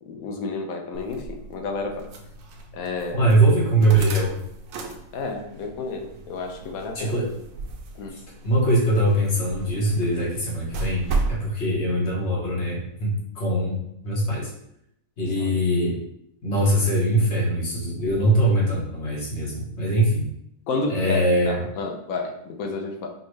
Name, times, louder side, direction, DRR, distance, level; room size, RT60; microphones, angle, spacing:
voice 1, 0.0-2.1 2.7-3.3 5.1-7.2 7.9-8.2 15.4-15.6 20.7-23.1, left 3 dB, 90° left, 4 dB, 1.1 m, -31 dB
sound 1, 0.9-11.4, right 3 dB, 80° right, 1.0 m, -35 dB
voice 2, 3.1-4.4 6.9-7.3 8.4-11.0 11.3-14.5 15.2-15.9 16.4-20.3 20.9-21.6, right 1 dB, 55° left, -3 dB, 1.4 m, -22 dB
5.2 x 2.4 x 3.1 m, 0.76 s
omnidirectional pair, 1.4 m